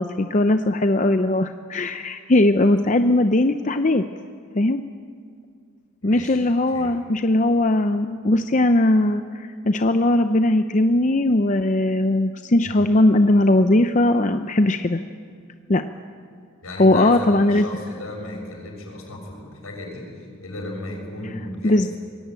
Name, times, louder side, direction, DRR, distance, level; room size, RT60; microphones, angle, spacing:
voice 1, 0.0-4.0 4.6-4.8 6.0-15.0 15.7-15.8 16.8-17.6 21.6-21.9, left 1 dB, 35° left, 8 dB, 0.6 m, -19 dB
voice 2, 6.0-6.4 6.7-6.9 12.6-12.7 16.6-20.1 20.4-21.8, left 1 dB, 75° left, 2 dB, 6.7 m, -35 dB
24.5 x 21.0 x 9.0 m, 2.2 s
head